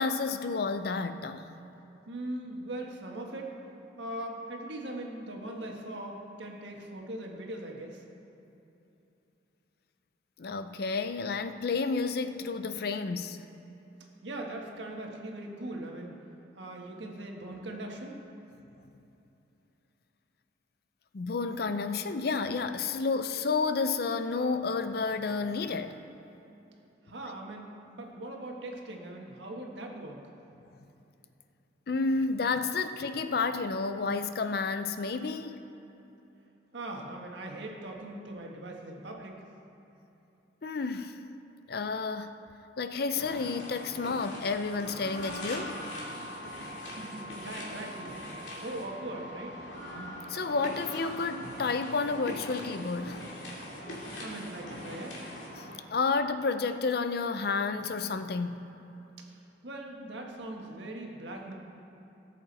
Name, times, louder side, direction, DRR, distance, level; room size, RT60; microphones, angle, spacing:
voice 1, 0.0-1.5 10.4-13.4 21.1-26.0 31.9-35.6 40.6-41.2 41.7-42.4 42.8-45.7 50.3-53.2 55.9-58.7, left 4 dB, 55° left, 10 dB, 0.5 m, -30 dB
voice 2, 2.1-3.6 4.0-8.0 14.2-16.2 16.5-18.1 27.0-30.2 36.7-39.3 46.8-48.2 48.5-49.6 54.2-55.2 59.2-61.5, right 1 dB, 80° right, 1 dB, 1.5 m, -40 dB
sound 1, 43.2-55.7, left 1 dB, 90° left, 2.5 m, -41 dB
18.0 x 7.2 x 4.1 m, 3.0 s
head